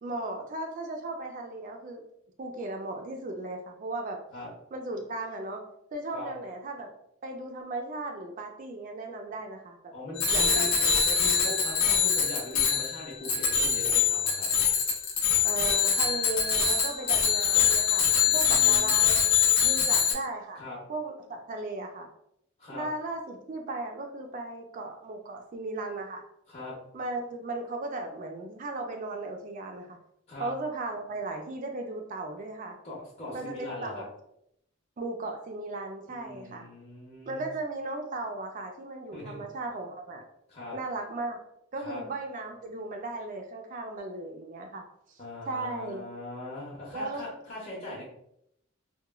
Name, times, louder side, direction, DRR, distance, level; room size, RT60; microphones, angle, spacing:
voice 1, 0.0-2.0 2.4-4.2 4.7-5.6 5.9-6.9 7.2-9.9 10.3-11.0 15.4-19.3 19.6-20.6 20.9-22.1 22.7-26.2 26.9-30.0 30.4-32.8 33.3-34.1 35.0-36.6 37.3-40.2 40.7-41.4 41.7-44.8 45.1-45.2 45.5-46.0 46.9-47.3, right 2 dB, 40° right, 3 dB, 0.3 m, -36 dB
voice 2, 9.9-14.5 18.3-18.9 19.6-19.9 20.5-20.8 22.6-22.9 26.5-26.8 30.3-30.5 32.8-34.0 36.1-37.4 39.1-39.4 40.5-40.8 41.8-42.0 45.2-48.0, left 1 dB, 30° left, -8 dB, 0.7 m, -40 dB
Bicycle bell, 10.2-20.1, left 7 dB, 90° left, 0.6 m, -24 dB
2.9 x 2.2 x 2.3 m, 0.76 s
head